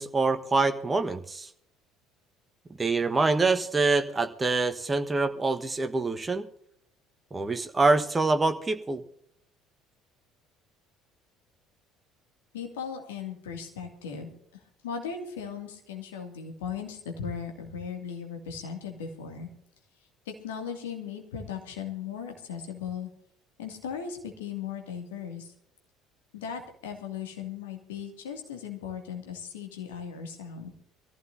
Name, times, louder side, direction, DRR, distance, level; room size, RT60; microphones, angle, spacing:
voice 1, 0.0-1.5 2.8-6.5 7.3-9.0, right 3 dB, 20° right, 8 dB, 1.2 m, -25 dB
voice 2, 12.5-19.5 20.3-23.1 23.6-25.5 26.3-30.7, left 7 dB, 70° left, 4 dB, 2.3 m, -37 dB
24.0 x 15.0 x 2.7 m, 0.66 s
figure-of-eight pair, 55°, 0 cm